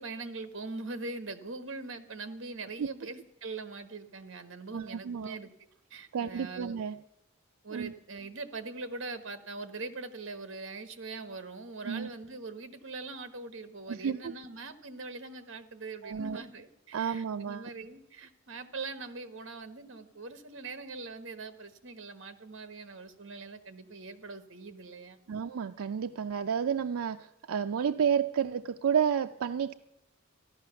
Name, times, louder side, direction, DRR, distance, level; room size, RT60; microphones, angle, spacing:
voice 1, 0.0-5.5 5.9-6.8 7.6-25.2, right 3 dB, 60° right, 11 dB, 1.2 m, -42 dB
voice 2, 4.7-5.4 6.1-7.0 7.7-7.9 11.8-12.1 13.9-14.3 16.0-16.4 16.9-17.7 25.3-29.7, right 7 dB, 85° right, 9 dB, 0.4 m, -31 dB
14.0 x 11.5 x 6.9 m, 0.87 s
head